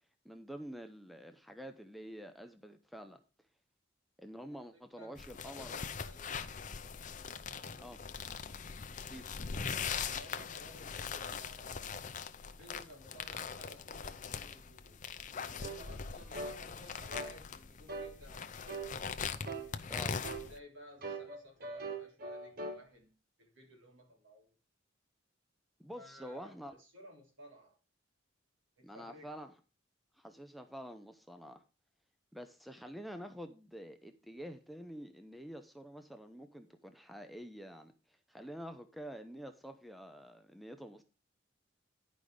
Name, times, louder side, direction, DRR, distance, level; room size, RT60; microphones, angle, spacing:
voice 1, 0.2-3.2 4.2-5.7 7.8-8.0 9.1-9.3 19.9-20.3 25.8-26.7 28.8-29.5 30.1-31.6 32.3-41.0, equal, ahead, 0.6 m, -48 dB
voice 2, 4.7-6.5 9.9-12.0 12.4-15.1 15.6-18.9 20.5-24.5 25.9-27.8 28.8-29.3, equal, 75° right, 3.5 m, -56 dB
sound 1, 5.2-20.6, left 6 dB, 40° left, 0.6 m, -41 dB
sound 2, 15.6-15.8 16.3-16.6 17.1-17.3 17.9-18.1 18.7-18.9 19.4-19.7 20.2-20.5 21.0-22.8, right 3 dB, 50° right, 1.2 m, -41 dB
10.5 x 5.3 x 4.9 m
head